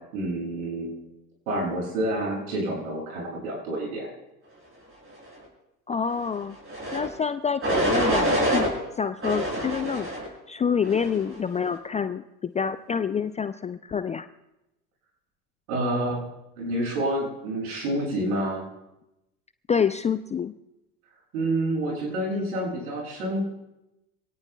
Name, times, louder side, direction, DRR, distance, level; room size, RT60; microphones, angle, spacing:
voice 1, 0.1-1.0 1.5-4.1 15.7-16.2 16.6-18.6 21.3-23.4, right 1 dB, 70° right, -2 dB, 7.5 m, -28 dB
voice 2, 5.9-6.6 6.9-10.1 10.5-14.3 19.7-20.5, left 6 dB, 15° left, 11 dB, 0.4 m, -27 dB
sound 1, 6.7-7.1 7.6-8.7 9.2-10.3 10.8-11.3, right 1 dB, 30° right, 7.0 m, -25 dB
26.5 x 18.0 x 2.3 m, 0.93 s
hypercardioid pair, 75°, 46 cm